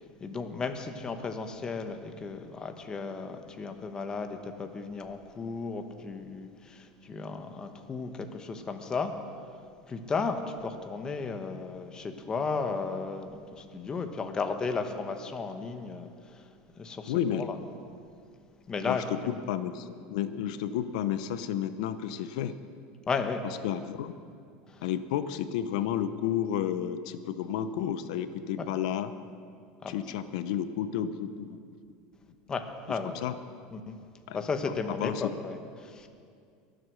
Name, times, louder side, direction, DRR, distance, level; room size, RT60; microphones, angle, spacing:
voice 1, 0.2-9.1 9.9-16.4 16.8-17.6 18.7-19.3 23.1-23.4 24.7-24.8 28.6-28.7 29.8-30.0 32.5-33.2 33.7-34.0 34.3-36.1, left 4 dB, 20° left, 6 dB, 1.1 m, -34 dB
voice 2, 17.1-17.5 18.8-22.5 23.6-24.1 24.8-29.1 29.9-31.6 32.9-33.4 34.3-34.4 35.0-35.3, left 10 dB, 80° left, 11 dB, 0.9 m, -31 dB
23.0 x 7.9 x 6.5 m, 2.3 s
supercardioid pair, 145°, 4 cm